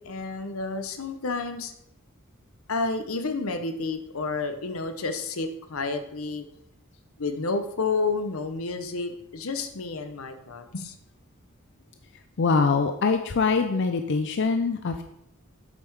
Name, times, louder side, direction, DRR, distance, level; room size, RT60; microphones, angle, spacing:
voice 1, 0.1-1.7 2.7-6.4 7.2-10.9, left 3 dB, 85° left, 8 dB, 0.9 m, -30 dB
voice 2, 12.4-15.0, left 4 dB, 55° left, 7 dB, 0.5 m, -23 dB
8.1 x 5.6 x 4.7 m, 0.75 s
head